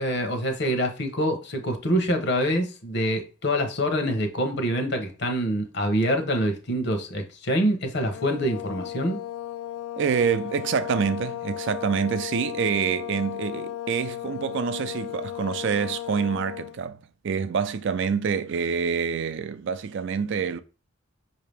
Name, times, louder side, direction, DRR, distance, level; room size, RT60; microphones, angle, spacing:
voice 1, 0.0-9.2, equal, 55° left, 1.0 m, -25 dB
sound 1, 8.1-16.8, left 12 dB, 80° left, 0.4 m, -35 dB
voice 2, 10.0-20.6, right 6 dB, 60° right, 0.4 m, -26 dB
5.7 x 2.8 x 3.4 m
head